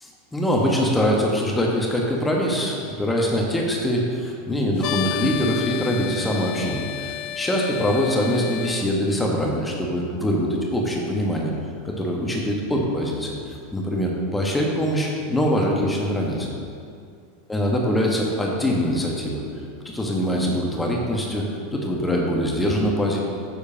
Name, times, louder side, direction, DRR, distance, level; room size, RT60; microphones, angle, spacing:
voice 1, 0.0-11.5 11.8-16.5 17.5-19.4 19.8-23.2, equal, 10° left, -1 dB, 1.4 m, -23 dB
sound 1, 4.8-8.9, left 13 dB, 50° left, 0.3 m, -32 dB
9.8 x 6.7 x 2.9 m, 2.3 s
figure-of-eight pair, 85°, 0 cm